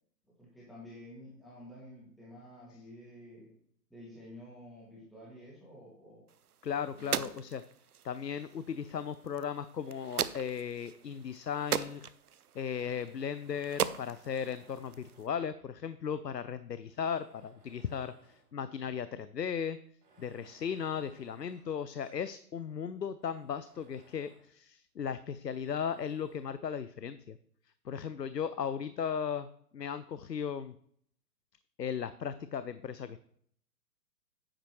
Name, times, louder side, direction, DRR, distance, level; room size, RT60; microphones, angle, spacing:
voice 1, 0.4-3.5 3.9-6.2 7.0-7.2, left 1 dB, ahead, -7 dB, 2.0 m, -50 dB
sound 1, 6.3-15.3, right 8 dB, 65° right, 0.7 m, -39 dB
voice 2, 6.6-7.6 8.0-12.1 12.5-19.8 20.2-27.4 27.9-29.5 29.7-30.7 31.8-33.2, left 7 dB, 85° left, 14 dB, 0.6 m, -36 dB
Tools, 8.5-9.6 10.2-11.9 12.6-15.5 16.2-16.3 16.8-18.6 18.9-19.0 19.9-22.4 22.7-22.8 23.2-24.5 25.5-26.5, right 3 dB, 30° right, 3.1 m, -65 dB
10.0 x 8.8 x 3.1 m, 0.65 s
figure-of-eight pair, 125°, 48 cm